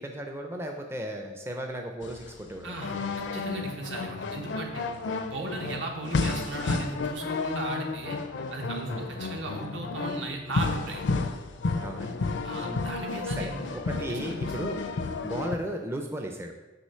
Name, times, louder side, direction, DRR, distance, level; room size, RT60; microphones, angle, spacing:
voice 1, 0.0-2.8 5.6-5.8 8.9-9.1 11.8-12.2 12.6-12.9 13.2-14.9 15.2-16.5, right 1 dB, 15° right, 3 dB, 0.4 m, -36 dB
sound 1, 2.0-15.6, left 3 dB, 70° left, 0.5 m, -32 dB
voice 2, 2.6-2.9 3.3-4.8 5.2-8.2 8.5-11.0 12.4-13.7 14.1-14.2, right 2 dB, 70° right, 1 dB, 1.1 m, -36 dB
6.3 x 3.1 x 5.5 m, 1.1 s
head